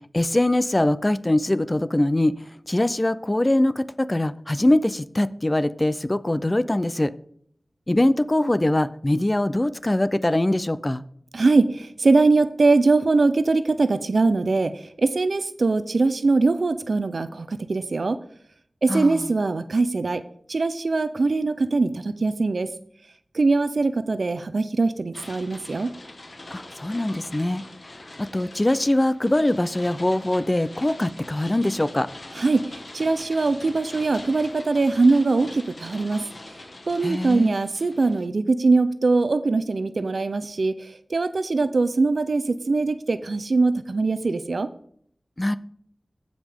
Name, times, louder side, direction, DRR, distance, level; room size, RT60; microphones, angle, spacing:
voice 1, 0.1-2.3 2.7-7.1 7.9-11.0 18.9-19.3 26.5-27.6 28.2-32.1 37.0-37.6 45.4-45.6, left 1 dB, 25° left, 15 dB, 0.5 m, -22 dB
voice 2, 11.3-18.2 18.8-20.2 20.5-22.7 23.3-25.9 32.3-32.7 32.9-36.2 36.9-44.7, right 3 dB, 80° right, 12 dB, 0.5 m, -22 dB
sound 1, 25.1-38.3, left 2 dB, 60° left, 1.3 m, -43 dB
15.5 x 5.1 x 3.6 m, 0.63 s
wide cardioid pair, 55°, 0 cm